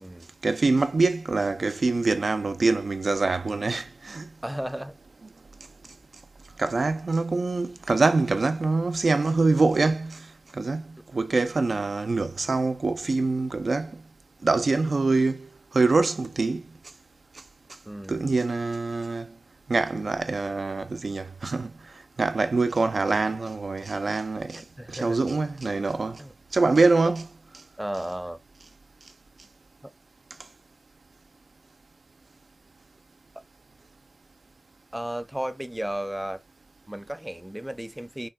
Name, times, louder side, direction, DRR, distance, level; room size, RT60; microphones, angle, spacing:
voice 1, 0.4-4.3 6.6-10.3 10.5-14.0 14.4-16.6 18.1-19.3 19.7-21.7 22.2-26.2 26.5-27.2, right 3 dB, 85° right, 0.4 m, -24 dB
voice 2, 4.4-5.0 17.9-18.3 24.5-25.2 26.2-26.3 27.8-28.4 29.8-29.9 34.9-36.4 36.9-38.3, right 1 dB, 10° right, 0.4 m, -34 dB
3.5 x 2.2 x 2.2 m
wide cardioid pair, 50°, 0 cm